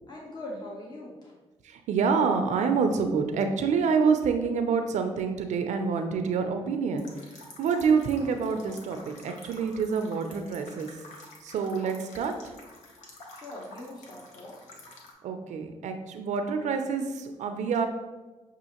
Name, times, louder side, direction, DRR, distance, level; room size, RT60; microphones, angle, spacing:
voice 1, 0.1-1.3 13.3-14.6, left 1 dB, 35° left, -3 dB, 0.9 m, -41 dB
voice 2, 1.6-7.1 7.6-10.9 11.4-12.5 15.2-17.9, right 5 dB, 80° right, 6 dB, 0.4 m, -27 dB
sound 1, 7.0-15.1, left 2 dB, 85° left, 0.8 m, -49 dB
6.3 x 2.5 x 2.9 m, 1.2 s
cardioid pair, 70°, 12 cm